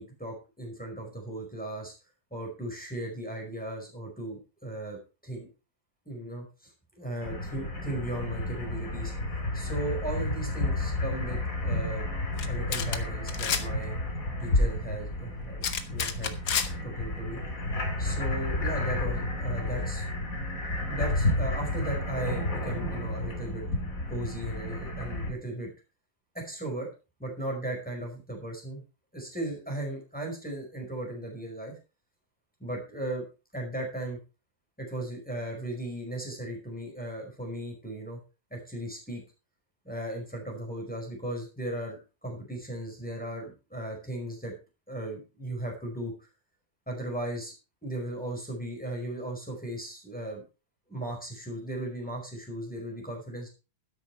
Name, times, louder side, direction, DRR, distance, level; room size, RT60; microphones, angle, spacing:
voice 1, 0.0-1.9 2.3-5.5 6.0-9.1 9.5-12.1 12.5-13.9 14.4-15.6 15.9-16.3 16.8-17.4 18.0-20.0 20.9-23.6 24.1-25.7 26.3-26.9 27.2-28.8 29.1-31.7 32.6-33.2 33.5-34.2 34.8-38.2 38.5-39.2 39.8-44.5 44.9-46.3 46.9-47.5 47.8-50.4 50.9-53.5, right 1 dB, 5° left, 0 dB, 4.9 m, -36 dB
sound 1, 7.2-25.3, left 1 dB, 55° left, 3.1 m, -31 dB
sound 2, 12.4-12.5 12.7-13.0 13.3-13.6 15.6-16.7, left 7 dB, 80° left, 1.8 m, -29 dB
12.5 x 10.5 x 4.6 m, 0.32 s
omnidirectional pair, 1.7 m